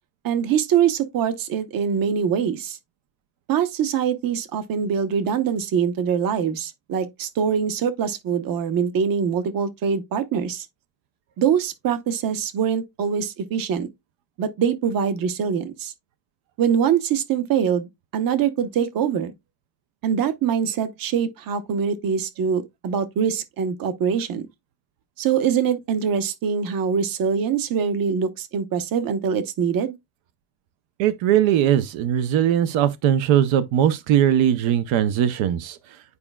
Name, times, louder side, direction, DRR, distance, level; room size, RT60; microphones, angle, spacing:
voice 1, 0.2-2.8 3.5-10.7 11.4-13.9 14.4-15.9 16.6-19.3 20.0-24.5 25.2-30.0, right 7 dB, 50° right, 0.9 m, -23 dB
voice 2, 31.0-35.8, right 10 dB, 85° right, 0.7 m, -20 dB
9.5 x 4.9 x 2.2 m
cardioid pair, 175°, 45 cm